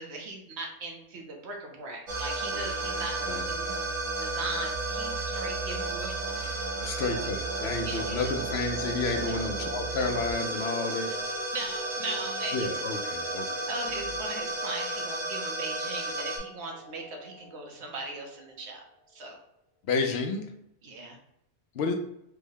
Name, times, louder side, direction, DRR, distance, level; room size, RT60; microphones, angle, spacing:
voice 1, 0.0-3.7 4.2-6.1 7.8-8.3 11.5-12.7 13.7-18.8 19.1-19.4 20.8-21.2, right 2 dB, 65° right, 1 dB, 1.0 m, -38 dB
sound 1, 2.1-16.4, right 2 dB, 85° right, 1.2 m, -33 dB
sound 2, 4.6-19.0, right 2 dB, 45° right, 1.0 m, -46 dB
voice 2, 6.8-11.1 12.5-13.7 19.9-20.5 21.7-21.9, left 3 dB, 65° left, 3 dB, 0.8 m, -31 dB
3.4 x 2.1 x 3.6 m, 0.79 s
omnidirectional pair, 1.2 m